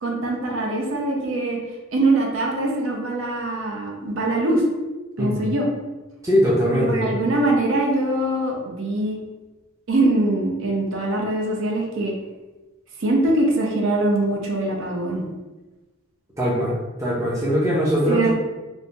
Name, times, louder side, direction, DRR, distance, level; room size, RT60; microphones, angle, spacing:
voice 1, 0.0-1.6 1.9-4.6 5.2-5.7 6.9-9.2 9.9-12.1 13.0-15.2 18.1-18.5, right 2 dB, 65° right, 0 dB, 0.5 m, -22 dB
voice 2, 6.2-7.2 16.4-16.7 17.0-18.2, equal, 15° right, -6 dB, 0.5 m, -21 dB
3.2 x 2.1 x 2.6 m, 1.1 s
head